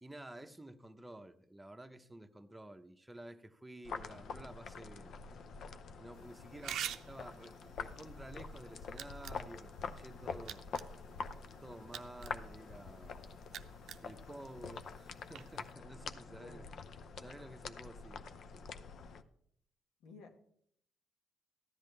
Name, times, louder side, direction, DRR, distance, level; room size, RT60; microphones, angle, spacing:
voice 1, 0.0-5.2 6.0-10.7 11.6-13.3 14.0-16.6 17.2-18.7, right 1 dB, 10° right, 0.8 m, -52 dB
sound 1, 3.8-19.2, left 5 dB, 65° left, 0.7 m, -46 dB
sound 2, 6.1-15.7, right 10 dB, 80° right, 0.6 m, -49 dB
voice 2, 16.3-16.8 20.0-20.3, left 3 dB, 90° left, 1.5 m, -56 dB
14.5 x 10.5 x 3.3 m
cardioid pair, 90°, 0 cm